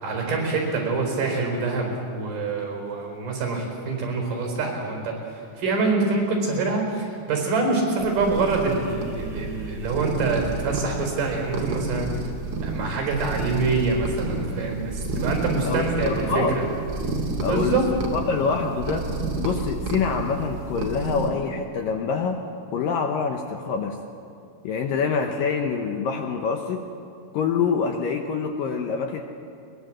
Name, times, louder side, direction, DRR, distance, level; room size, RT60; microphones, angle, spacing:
voice 1, 0.0-12.1 12.6-16.6 17.5-17.9, right 3 dB, 60° right, 2 dB, 6.2 m, -25 dB
sound 1, 8.0-21.3, right 3 dB, 45° right, 3.2 m, -30 dB
voice 2, 15.6-16.5 17.4-17.8 18.1-19.1 19.4-22.4 22.7-24.0 24.6-26.8 27.3-29.2, left 5 dB, 70° left, 3 dB, 2.3 m, -26 dB
22.0 x 21.5 x 7.7 m, 2.6 s
omnidirectional pair, 4.9 m